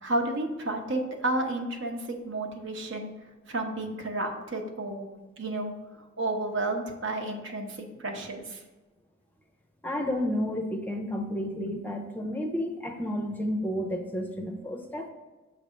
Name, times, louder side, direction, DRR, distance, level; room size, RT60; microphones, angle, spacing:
voice 1, 0.0-3.1 3.5-5.1 5.4-5.7 6.2-8.6, right 2 dB, 65° right, 3 dB, 0.9 m, -31 dB
voice 2, 9.8-15.1, equal, 10° left, 4 dB, 0.5 m, -31 dB
7.2 x 3.3 x 5.1 m, 1.2 s
head